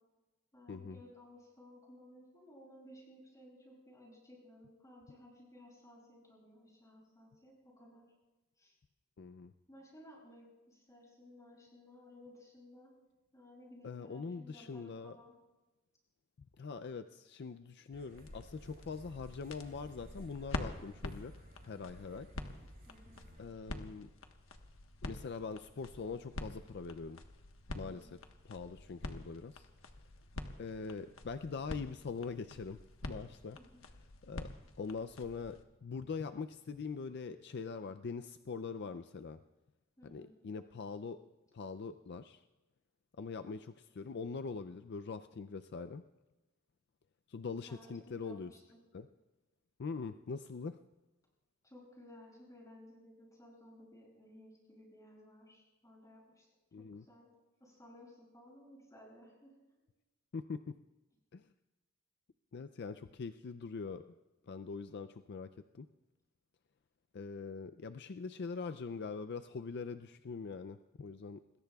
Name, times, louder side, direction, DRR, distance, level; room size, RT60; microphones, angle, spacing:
voice 1, 0.5-8.0 8.6-8.8 9.7-12.9 13.3-15.3 22.9-23.2 27.8-28.1 33.5-33.8 40.0-40.3 47.7-48.8 51.6-56.5 57.0-57.3 57.6-59.5, left 1 dB, 15° left, -3 dB, 7.5 m, -57 dB
voice 2, 9.2-9.5 13.8-15.1 16.6-21.3 21.6-22.3 23.4-24.1 25.0-27.2 27.7-28.2 28.4-29.7 30.6-32.8 33.1-33.6 34.2-34.5 34.8-39.4 40.0-41.2 41.5-42.4 43.2-46.0 47.3-48.5 48.9-49.1 49.8-50.8 56.7-57.0 60.3-60.7 61.3-61.4 62.5-64.0 64.5-65.5 65.7-65.9 67.1-71.4, left 4 dB, 55° left, 10 dB, 0.4 m, -43 dB
sound 1, 17.9-23.5, equal, 50° right, 6.2 m, -57 dB
sound 2, 18.1-35.6, left 1 dB, 75° left, 1.3 m, -47 dB
27.0 x 21.0 x 2.4 m, 1.1 s
head